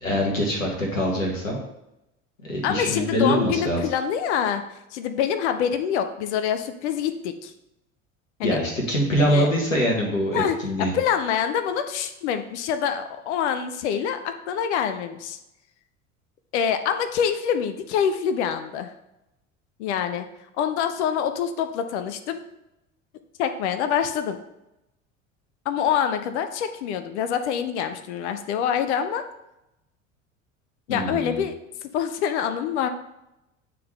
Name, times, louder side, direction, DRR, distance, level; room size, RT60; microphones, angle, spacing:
voice 1, 0.0-1.6 2.4-3.8 8.4-10.9 30.9-31.4, equal, 80° left, 0 dB, 1.4 m, -24 dB
voice 2, 2.6-4.6 4.9-7.5 8.4-8.6 9.2-9.5 10.3-15.4 16.5-18.9 19.8-20.3 20.6-22.4 23.4-24.4 25.7-29.2 30.9-31.5 31.9-32.9, left 8 dB, 60° left, 9 dB, 0.7 m, -25 dB
9.3 x 3.8 x 3.2 m, 0.88 s
figure-of-eight pair, 70°, 38 cm